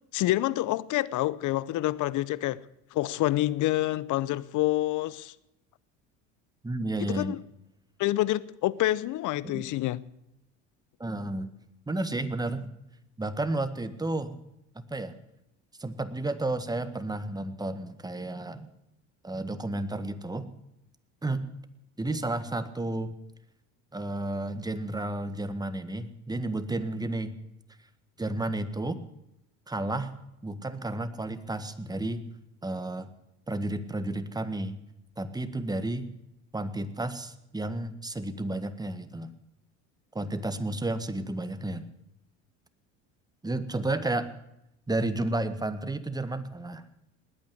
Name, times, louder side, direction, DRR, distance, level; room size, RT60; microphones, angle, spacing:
voice 1, 0.1-2.6 2.9-5.3 7.0-7.4 8.0-10.0, left 16 dB, 55° left, 0.9 m, -27 dB
voice 2, 6.6-7.4 9.5-9.6 11.0-11.5 11.9-12.7 13.2-14.4 14.9-15.1 15.8-18.7 19.2-20.5 21.2-21.5 22.0-23.1 23.9-27.4 28.2-29.0 29.7-30.1 30.4-32.2 32.6-33.1 33.5-34.8 35.2-36.1 36.5-39.3 40.2-41.8 43.4-44.3 44.9-46.8, right 2 dB, 10° right, 1.7 m, -32 dB
20.0 x 9.1 x 8.0 m
supercardioid pair, 80°, 36 cm